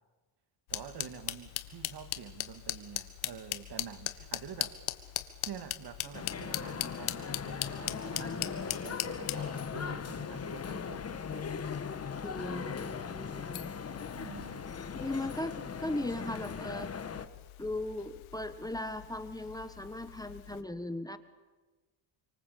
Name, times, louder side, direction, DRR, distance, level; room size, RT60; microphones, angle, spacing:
sound 1, 0.7-20.6, left 15 dB, 90° left, 1.8 m, -41 dB
voice 1, 0.7-4.8 5.5-11.5 14.1-14.8, right 8 dB, 55° right, 2.3 m, -47 dB
sound 2, 6.1-17.3, left 6 dB, 30° left, 1.6 m, -39 dB
voice 2, 12.2-13.7 14.9-16.9 17.6-21.2, left 1 dB, 10° left, 1.3 m, -38 dB
27.5 x 25.0 x 8.6 m
cardioid pair, 120°, 48 cm